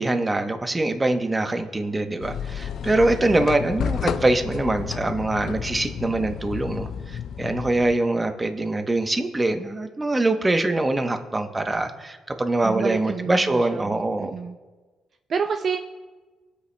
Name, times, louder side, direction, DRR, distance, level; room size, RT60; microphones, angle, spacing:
voice 1, 0.0-14.3, right 2 dB, 20° right, 6 dB, 0.9 m, -24 dB
sound 1, 2.2-8.0, left 8 dB, 70° left, 0.4 m, -31 dB
voice 2, 3.0-3.5 12.6-14.6 15.3-15.8, right 6 dB, 50° right, 6 dB, 0.4 m, -30 dB
19.0 x 8.3 x 2.2 m, 1.3 s
cardioid pair, 90°, 0 cm